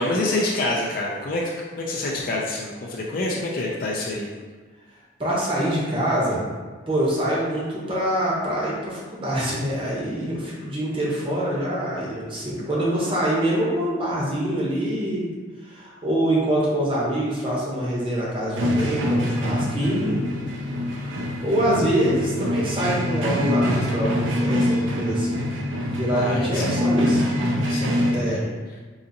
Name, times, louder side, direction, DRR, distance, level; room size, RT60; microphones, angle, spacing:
voice 1, 0.0-1.5 1.8-4.3 26.1-27.3 27.6-28.5, left 2 dB, 45° left, -3 dB, 0.4 m, -27 dB
voice 2, 5.2-6.4 6.9-15.3 15.6-20.2 21.0-25.4 25.9-27.3 28.1-28.4, right 1 dB, 25° right, -5 dB, 0.7 m, -25 dB
sound 1, 18.5-28.2, left 1 dB, 75° right, 0.5 m, -24 dB
3.9 x 2.6 x 2.6 m, 1.4 s
head